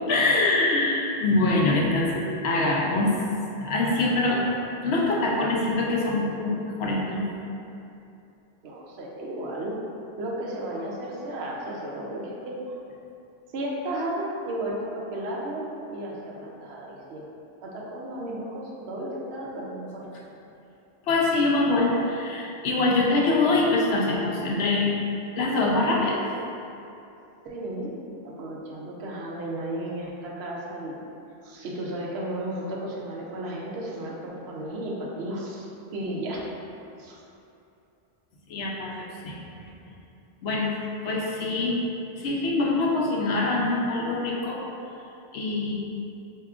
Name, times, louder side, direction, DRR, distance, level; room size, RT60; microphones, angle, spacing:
voice 1, 0.1-3.1 3.6-4.4 4.8-7.2 21.1-24.9 25.4-26.2 38.5-39.4 40.4-40.7 41.0-41.8 42.2-44.6 45.3-45.7, left 2 dB, 75° left, -3 dB, 0.8 m, -24 dB
voice 2, 8.6-9.8 10.2-12.8 13.5-17.3 17.6-20.0 27.4-28.0 28.2-31.0 31.4-35.7 35.9-36.4 37.0-37.2, right 1 dB, 80° right, -3 dB, 0.9 m, -34 dB
4.5 x 2.8 x 2.4 m, 2.7 s
omnidirectional pair, 1.1 m